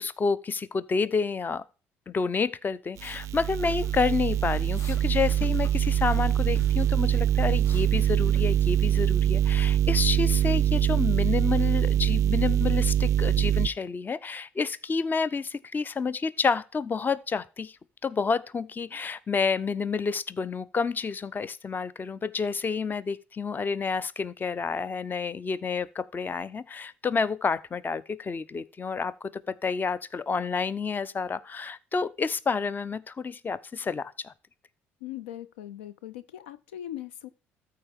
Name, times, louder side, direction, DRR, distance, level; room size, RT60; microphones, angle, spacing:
voice 1, 0.0-1.6 2.1-17.8 18.0-34.3, left 5 dB, 30° left, 0.6 m, -29 dB
sound 1, 3.0-3.2 3.6-4.3 4.7-5.0 5.3-6.2 6.6-7.1 7.3-8.7, left 6 dB, 60° left, 1.0 m, -46 dB
sound 2, 3.0-13.7, right 12 dB, 55° right, 0.3 m, -24 dB
voice 2, 35.0-37.3, left 12 dB, 90° left, 0.5 m, -40 dB
13.5 x 4.7 x 3.5 m
hypercardioid pair, 65°, 6 cm